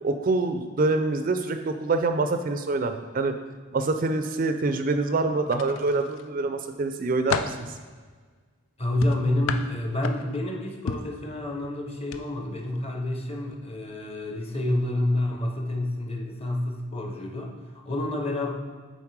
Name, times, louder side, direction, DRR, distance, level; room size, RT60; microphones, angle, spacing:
voice 1, 0.0-3.3 3.7-7.7, right 3 dB, 40° right, 8 dB, 0.4 m, -25 dB
sound 1, 5.5-6.3 6.8-7.6 9.0-10.4 10.9-11.2 12.0-12.2 12.6-12.8, left 5 dB, 85° left, 0.4 m, -32 dB
voice 2, 8.8-18.5, left 1 dB, 30° left, 2 dB, 0.8 m, -28 dB
7.2 x 4.1 x 4.7 m, 1.5 s
head